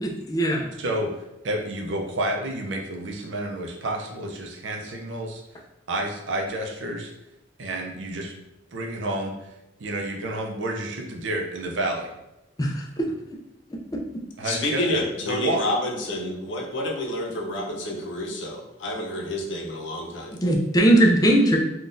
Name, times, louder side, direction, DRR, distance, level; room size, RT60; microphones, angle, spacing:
voice 1, 0.0-0.7 12.6-13.1 20.4-21.6, right 1 dB, 20° left, 0 dB, 0.4 m, -20 dB
voice 2, 0.8-5.4 5.9-7.1 7.6-8.3 8.7-9.5 9.8-12.1 14.4-15.6, right 1 dB, 85° right, 2 dB, 0.5 m, -30 dB
voice 3, 14.4-20.4, left 1 dB, 90° left, 0 dB, 0.7 m, -29 dB
3.7 x 2.3 x 2.6 m, 0.92 s
head